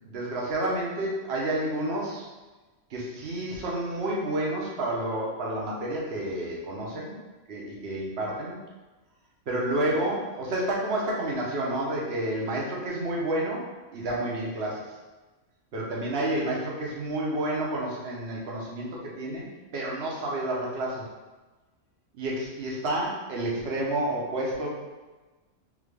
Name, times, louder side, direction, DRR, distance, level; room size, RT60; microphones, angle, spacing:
voice 1, 0.0-2.3 2.9-7.2 7.5-8.6 9.5-15.0 15.7-19.4 19.7-21.1 22.1-24.7, right 1 dB, 55° right, -3 dB, 1.1 m, -30 dB
3.6 x 2.9 x 3.3 m, 1.2 s
omnidirectional pair, 1.3 m